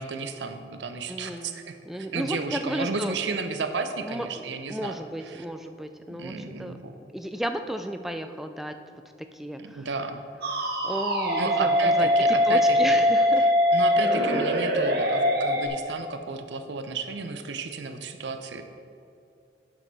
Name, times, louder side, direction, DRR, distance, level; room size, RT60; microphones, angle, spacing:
voice 1, 0.0-5.0 5.3-5.4 6.1-6.9 9.6-10.2 11.4-13.0 13.4-18.6, right 4 dB, 80° right, 7 dB, 0.6 m, -33 dB
voice 2, 1.1-1.6 1.8-3.1 4.0-6.8 7.1-8.8 9.3-9.9 10.6-12.1 12.5-13.5 14.0-14.4, equal, ahead, 7 dB, 0.3 m, -33 dB
sound 1, 10.4-15.7, left 1 dB, 60° right, 0.9 m, -22 dB
8.9 x 6.5 x 4.0 m, 2.5 s
head